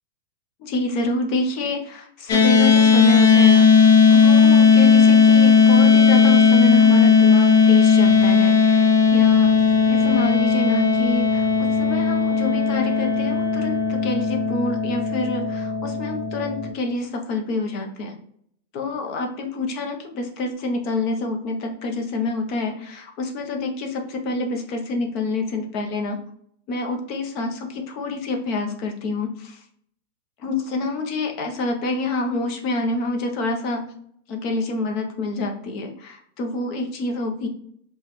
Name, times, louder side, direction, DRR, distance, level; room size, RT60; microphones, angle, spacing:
voice 1, 0.6-9.5 9.9-18.2 18.7-26.2 26.7-29.6 30.4-33.9 34.3-37.5, left 3 dB, 30° left, 3 dB, 0.7 m, -27 dB
sound 1, 2.3-16.7, left 5 dB, 65° left, 0.8 m, -16 dB
4.9 x 2.3 x 3.0 m, 0.67 s
supercardioid pair, 175°, 0 cm